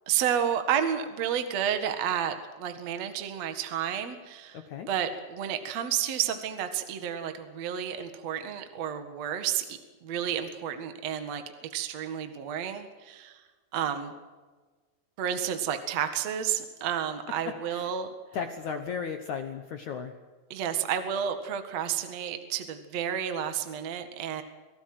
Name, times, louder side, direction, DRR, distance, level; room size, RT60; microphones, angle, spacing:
voice 1, 0.1-11.4 11.7-13.4 13.7-14.1 15.2-18.1 20.5-24.4, right 9 dB, 50° right, 8 dB, 2.3 m, -31 dB
voice 2, 4.5-4.9 17.7-17.9 18.3-20.1, left 6 dB, 65° left, 7 dB, 1.9 m, -35 dB
26.5 x 17.5 x 7.8 m, 1.4 s
omnidirectional pair, 4.9 m